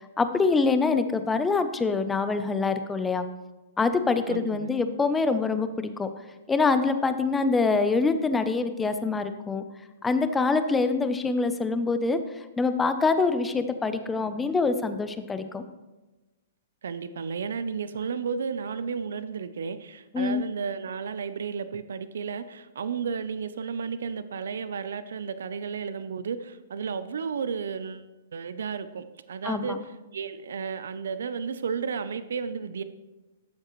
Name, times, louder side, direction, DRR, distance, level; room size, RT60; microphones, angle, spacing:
voice 1, 0.2-3.3 3.8-6.1 6.5-9.6 10.0-15.6 20.1-20.4 29.4-29.8, left 4 dB, 10° left, 10 dB, 0.6 m, -25 dB
voice 2, 4.3-4.7 16.8-29.8 30.1-32.8, right 6 dB, 85° right, 13 dB, 0.5 m, -33 dB
12.5 x 7.4 x 3.1 m, 1.1 s
hypercardioid pair, 150°, 0 cm